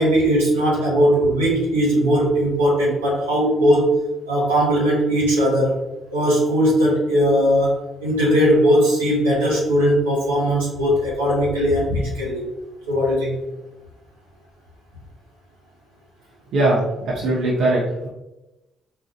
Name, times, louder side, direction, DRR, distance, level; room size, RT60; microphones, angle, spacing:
voice 1, 0.0-3.9 4.3-5.8 6.1-12.4 12.9-13.4, equal, 85° right, -5 dB, 0.9 m, -19 dB
voice 2, 16.5-18.1, right 2 dB, 65° right, -6 dB, 0.7 m, -20 dB
4.1 x 2.4 x 2.6 m, 0.97 s
hypercardioid pair, 45°, 0 cm